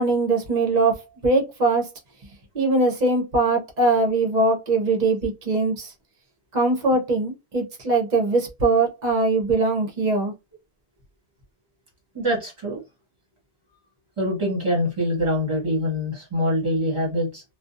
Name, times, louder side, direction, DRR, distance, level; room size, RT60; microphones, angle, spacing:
voice 1, 0.0-1.9 2.5-5.9 6.5-10.3, right 3 dB, 45° right, 0.8 m, -21 dB
voice 2, 12.1-12.8 14.2-17.4, equal, 30° right, 1.2 m, -24 dB
2.4 x 2.1 x 2.5 m
omnidirectional pair, 1.1 m